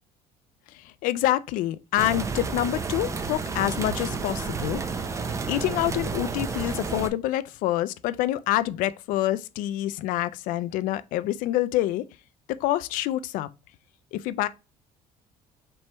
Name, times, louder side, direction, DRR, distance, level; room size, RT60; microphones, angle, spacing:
voice 1, 0.7-5.2 5.5-12.1 12.5-13.5 14.1-14.5, left 14 dB, 80° left, 0.4 m, -27 dB
sound 1, 2.0-7.1, right 5 dB, 20° right, 0.5 m, -31 dB
4.5 x 3.1 x 3.2 m
cardioid pair, 125°, 14 cm